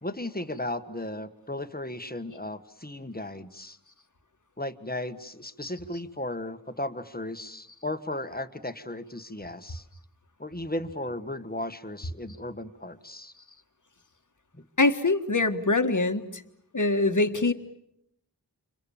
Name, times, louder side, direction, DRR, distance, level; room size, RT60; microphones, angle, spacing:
voice 1, 0.0-3.8 4.6-9.8 10.4-13.3 14.5-14.6, left 1 dB, 25° left, 10 dB, 1.6 m, -35 dB
voice 2, 14.8-16.4 16.7-17.5, left 3 dB, 50° left, 6 dB, 1.7 m, -24 dB
30.0 x 27.0 x 7.2 m, 0.77 s
wide cardioid pair, 40°, 38 cm